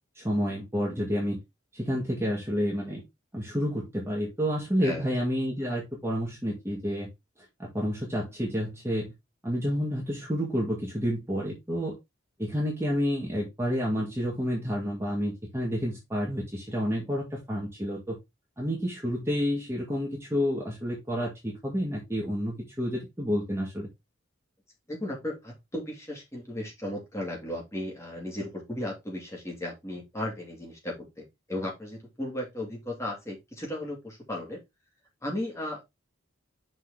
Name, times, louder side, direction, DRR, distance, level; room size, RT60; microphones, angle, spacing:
voice 1, 0.2-1.4 1.7-3.0 3.3-7.1 7.6-9.1 9.4-12.0 12.4-18.2 18.6-23.9, equal, 15° right, 2.0 m, -29 dB
voice 2, 24.9-34.6 35.2-35.8, left 1 dB, 15° left, 2.4 m, -35 dB
6.2 x 4.5 x 3.7 m
head